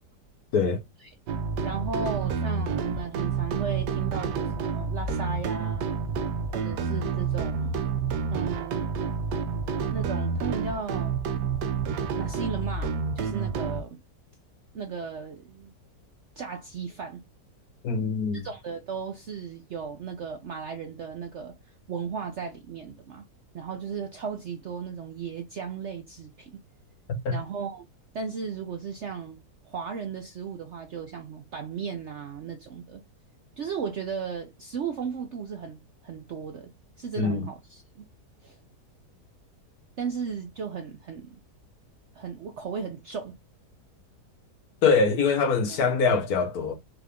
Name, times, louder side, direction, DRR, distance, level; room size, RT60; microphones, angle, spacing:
sound 1, 1.3-13.8, right 5 dB, 80° right, 1.2 m, -29 dB
voice 1, 1.6-5.9 6.5-7.8 8.3-8.8 9.9-11.1 12.2-14.0 14.7-15.7 16.4-17.2 18.3-21.6 21.9-23.2 23.5-26.6 27.3-27.9 28.1-29.4 29.7-33.0 33.6-36.7 37.0-38.1 38.4-38.6 40.0-41.4 42.1-43.3 45.7-46.0, right 6 dB, 60° right, 0.8 m, -35 dB
voice 2, 17.8-18.5 27.2-27.4 37.2-37.5 44.8-46.7, left 4 dB, 65° left, 1.5 m, -23 dB
4.7 x 2.4 x 3.4 m
omnidirectional pair, 1.8 m